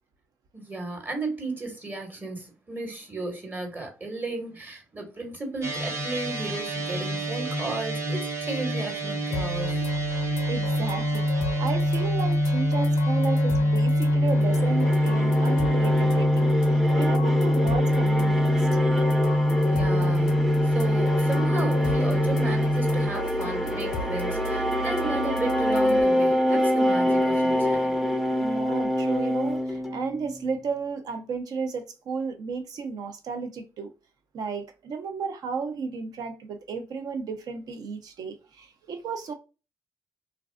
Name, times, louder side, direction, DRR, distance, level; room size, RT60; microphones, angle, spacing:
voice 1, 0.5-9.8 19.6-27.9, right 2 dB, 25° right, 1.2 m, -34 dB
sound 1, 5.6-23.1, left 1 dB, 45° right, 0.9 m, -24 dB
sound 2, 9.3-26.0, right 2 dB, 80° left, 0.4 m, -34 dB
voice 2, 10.1-18.7 28.4-33.9 34.3-39.3, right 5 dB, 65° right, 0.6 m, -33 dB
sound 3, 14.2-30.5, equal, ahead, 0.5 m, -27 dB
2.5 x 2.3 x 2.2 m
hypercardioid pair, 50°, 7 cm